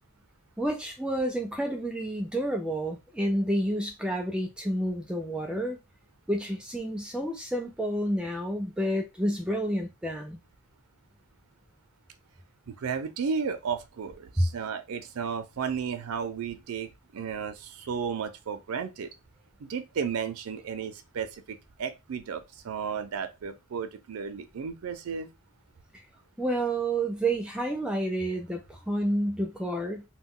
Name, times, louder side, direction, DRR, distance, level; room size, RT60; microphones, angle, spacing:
voice 1, 0.6-5.8 6.3-10.4 14.4-14.5 26.4-30.0, right 1 dB, 5° right, 0.3 m, -29 dB
voice 2, 12.7-19.1 19.6-25.3, right 6 dB, 85° right, 0.4 m, -34 dB
2.2 x 2.2 x 3.6 m
head